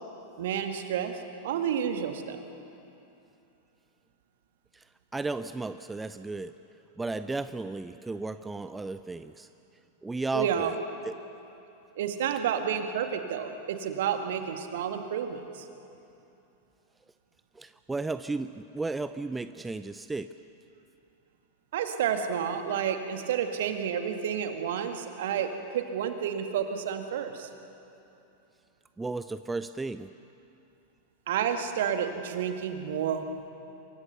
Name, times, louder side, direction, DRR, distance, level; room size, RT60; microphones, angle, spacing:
voice 1, 0.4-2.4 10.3-10.7 12.0-15.7 21.7-27.5 31.3-33.5, right 8 dB, 55° right, 6 dB, 1.9 m, -30 dB
voice 2, 5.1-6.5 7.0-9.5 10.0-10.8 11.0-11.1 17.6-20.3 29.0-30.1, right 3 dB, 10° right, 12 dB, 0.6 m, -34 dB
28.0 x 23.5 x 6.9 m, 2.9 s
figure-of-eight pair, 90°, 0 cm